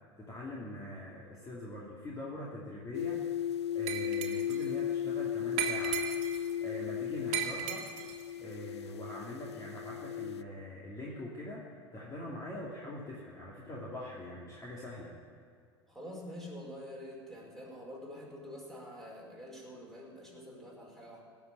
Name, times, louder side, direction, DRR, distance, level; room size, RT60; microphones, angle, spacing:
voice 1, 0.2-3.2 3.7-6.0 6.6-7.8 8.4-15.1, left 1 dB, 25° left, -5 dB, 2.8 m, -43 dB
sound 1, 2.9-10.4, left 10 dB, 90° left, 0.4 m, -36 dB
Glass, 3.9-4.7 5.6-6.5 7.3-8.2, right 9 dB, 55° right, 1.9 m, -36 dB
voice 2, 15.9-21.2, equal, ahead, -3 dB, 4.9 m, -46 dB
16.5 x 6.8 x 9.2 m, 2.1 s
hypercardioid pair, 90°, 14 cm